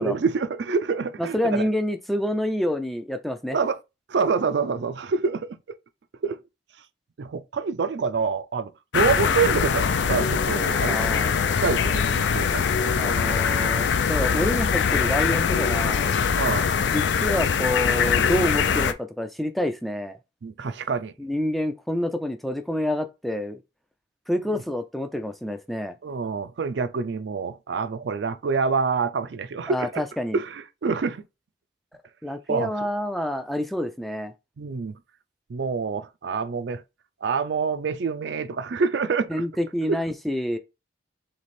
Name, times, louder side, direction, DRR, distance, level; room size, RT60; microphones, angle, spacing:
voice 1, 0.0-1.7 3.5-3.8 4.1-5.6 6.2-6.4 7.2-11.1 11.6-12.8 16.3-16.7 20.4-21.1 24.5-24.6 26.0-30.0 30.3-31.2 32.5-32.7 34.6-34.9 35.5-36.8 37.2-39.4 39.9-40.0, right 5 dB, 65° right, 0.4 m, -26 dB
voice 2, 1.2-3.6 10.8-11.4 13.0-16.1 16.9-20.2 21.2-23.6 24.3-25.9 29.7-30.4 32.2-34.3 39.3-40.6, left 1 dB, ahead, 0.3 m, -28 dB
sound 1, 8.9-18.9, left 6 dB, 75° left, 0.4 m, -22 dB
3.5 x 3.3 x 4.1 m
head